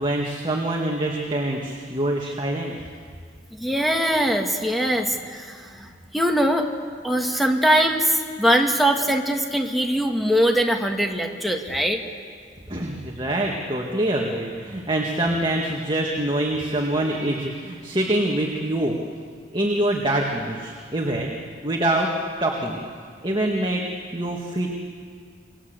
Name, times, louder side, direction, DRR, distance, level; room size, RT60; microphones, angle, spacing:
voice 1, 0.0-2.7 12.7-19.0 19.5-21.3 21.6-22.1 22.4-22.8 23.2-23.9 24.1-24.7, right 1 dB, 25° right, -1 dB, 2.1 m, -25 dB
voice 2, 3.6-5.9 6.1-6.7 7.0-12.0, equal, ahead, 2 dB, 2.0 m, -22 dB
28.5 x 22.5 x 8.1 m, 2.1 s
head